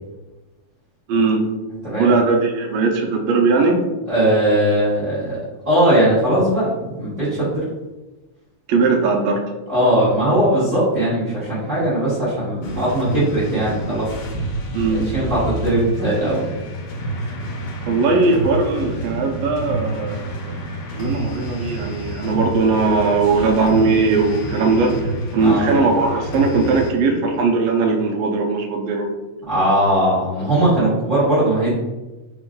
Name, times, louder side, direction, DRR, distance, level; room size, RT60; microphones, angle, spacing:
voice 1, 1.1-1.5 2.0-3.8 8.7-9.4 14.7-15.1 17.9-20.6 20.9-29.1, right 4 dB, 75° right, 2 dB, 1.6 m, -19 dB
voice 2, 1.8-2.2 4.1-5.4 5.6-7.6 9.7-14.1 14.9-16.4 18.1-18.2 25.4-25.7 29.4-31.7, right 1 dB, 35° right, -10 dB, 1.3 m, -19 dB
sound 1, 12.6-26.9, right 1 dB, 75° left, 2.0 m, -28 dB
4.6 x 3.0 x 3.7 m, 1.1 s
omnidirectional pair, 3.4 m